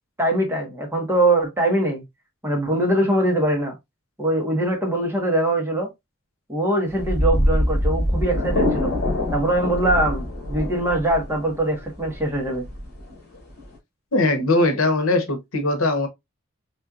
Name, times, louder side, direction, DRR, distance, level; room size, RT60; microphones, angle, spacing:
voice 1, 0.2-2.0 2.4-3.7 4.2-5.9 6.5-8.9 9.3-12.6, right 1 dB, 10° right, 1.4 m, -22 dB
sound 1, 6.9-13.8, left 1 dB, 50° left, 2.3 m, -24 dB
voice 2, 14.1-16.1, left 2 dB, 80° left, 1.0 m, -20 dB
4.3 x 3.3 x 2.4 m
head